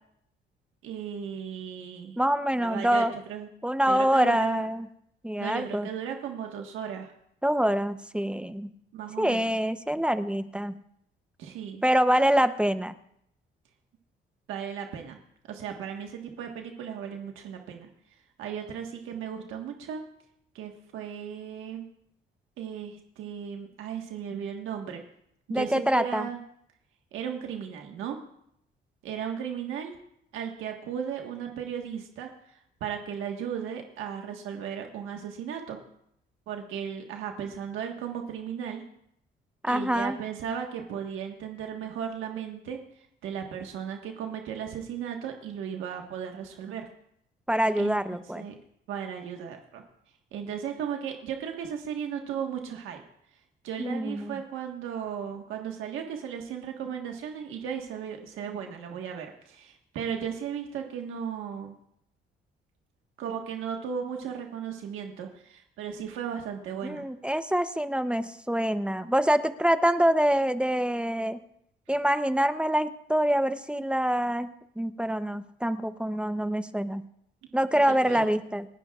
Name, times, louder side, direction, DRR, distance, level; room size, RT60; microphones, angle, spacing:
voice 1, 0.8-2.2 2.6-3.5 3.8-4.7 5.4-7.1 8.9-9.6 11.4-11.8 14.5-15.2 15.5-17.9 18.4-20.0 20.5-21.8 22.6-25.0 25.5-26.4 27.1-28.2 29.0-30.0 30.3-35.8 36.5-38.8 39.7-42.8 43.2-46.9 47.8-48.0 48.4-48.6 48.9-49.8 50.3-53.0 53.6-61.8 63.2-67.1 77.7-78.3, right 8 dB, 90° right, 2 dB, 1.5 m, -36 dB
voice 2, 2.2-3.1 3.6-4.9 5.2-5.9 7.4-8.7 9.2-10.8 11.8-12.9 25.5-26.3 39.6-40.2 47.5-48.5 53.8-54.4 66.8-71.4 71.9-74.5 74.8-77.0 77.5-78.7, equal, 5° right, 11 dB, 0.7 m, -25 dB
29.0 x 10.5 x 2.4 m, 0.73 s
cardioid pair, 90°, 20 cm